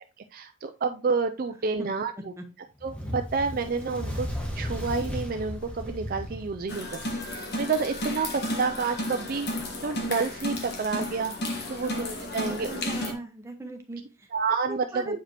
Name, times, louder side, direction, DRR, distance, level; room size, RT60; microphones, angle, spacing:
voice 1, 0.3-2.1 2.8-4.3 4.6-7.0 7.3-9.5 9.8-11.3 11.7-12.7 14.3-15.2, right 4 dB, 40° right, 7 dB, 0.4 m, -29 dB
Fire, 2.8-7.4, equal, 5° left, 1.4 m, -35 dB
sound 1, 6.7-13.1, left 1 dB, 50° left, 1.4 m, -33 dB
voice 2, 11.8-14.3 14.7-15.2, right 2 dB, 15° right, 3 dB, 0.9 m, -39 dB
7.8 x 4.9 x 2.9 m, 0.30 s
head